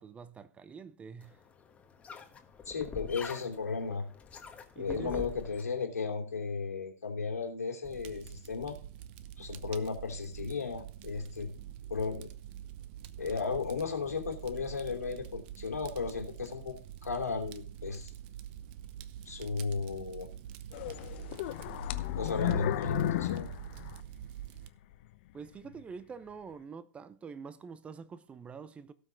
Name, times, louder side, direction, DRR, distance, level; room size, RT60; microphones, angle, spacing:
voice 1, 0.0-1.4 4.8-5.2 25.3-28.9, right 5 dB, 15° right, 0.7 m, -46 dB
sound 1, 1.2-5.6, left 6 dB, 15° left, 1.3 m, -45 dB
voice 2, 2.7-4.0 4.7-8.8 9.4-11.5 11.9-12.3 13.2-18.1 19.3-20.3 22.2-23.5, left 4 dB, 80° left, 2.9 m, -35 dB
Fire, 7.8-24.7, right 10 dB, 40° right, 0.9 m, -46 dB
sound 2, 20.7-24.5 24.9-25.0 25.6-25.8, left 16 dB, 45° left, 0.8 m, -34 dB
17.0 x 6.0 x 3.8 m
figure-of-eight pair, 110°, 8 cm